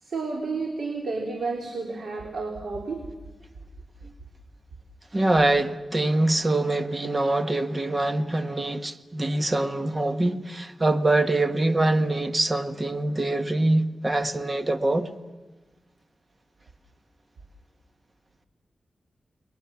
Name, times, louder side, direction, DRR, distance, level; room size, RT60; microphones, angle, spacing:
voice 1, 0.0-3.0, right 3 dB, 70° right, 3.6 m, -31 dB
voice 2, 5.1-15.1, right 2 dB, 25° right, 1.6 m, -24 dB
29.5 x 21.5 x 7.2 m
wide cardioid pair, 110°, 0 cm